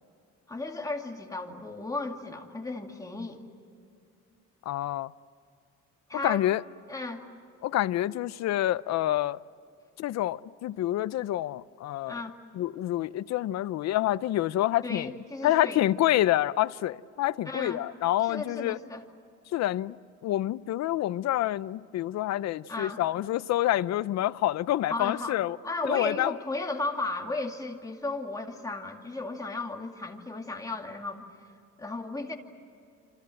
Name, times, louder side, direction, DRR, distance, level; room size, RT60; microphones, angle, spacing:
voice 1, 0.5-3.4 6.1-6.4 6.9-7.2 12.1-12.4 14.8-15.8 17.5-17.8 18.2-19.0 22.7-23.0 24.9-25.4 25.6-31.3 31.8-32.3, left 2 dB, 10° left, 2.2 m, -34 dB
voice 2, 4.7-5.1 6.2-6.6 7.6-9.4 10.0-12.2 12.5-15.1 15.4-18.8 19.5-20.0 20.2-25.6 25.9-26.3, left 14 dB, 60° left, 0.6 m, -27 dB
27.5 x 27.0 x 7.7 m
cardioid pair, 160°, 31 cm